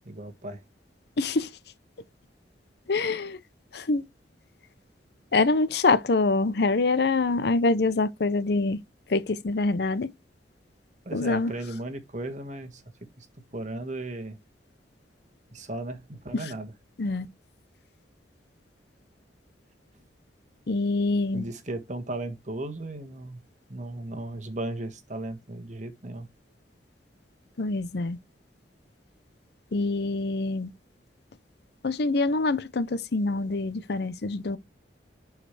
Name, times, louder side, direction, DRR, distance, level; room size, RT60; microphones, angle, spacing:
voice 1, 0.1-0.6 11.1-12.8 13.2-13.3 13.5-14.4 15.5-16.7 21.3-23.4 23.7-26.3, right 2 dB, 40° right, 1.6 m, -36 dB
voice 2, 1.2-1.5 2.9-3.4 3.7-4.0 5.3-8.8 9.1-10.1 11.1-11.5 16.3-16.5 17.0-17.3 20.7-21.5 27.6-28.2 29.7-30.7 31.8-34.6, left 3 dB, 60° left, 0.6 m, -25 dB
10.5 x 4.8 x 3.3 m
head